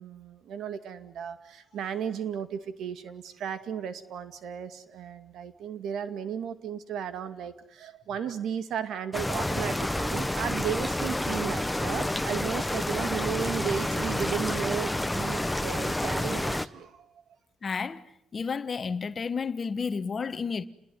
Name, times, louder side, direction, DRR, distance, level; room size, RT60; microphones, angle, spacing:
voice 1, 0.0-17.2, right 8 dB, 75° right, 2.2 m, -35 dB
sound 1, 9.1-16.7, left 1 dB, 10° left, 1.0 m, -29 dB
voice 2, 17.6-20.7, left 5 dB, 40° left, 1.3 m, -32 dB
29.0 x 20.5 x 9.7 m
cardioid pair, 90°, 0 cm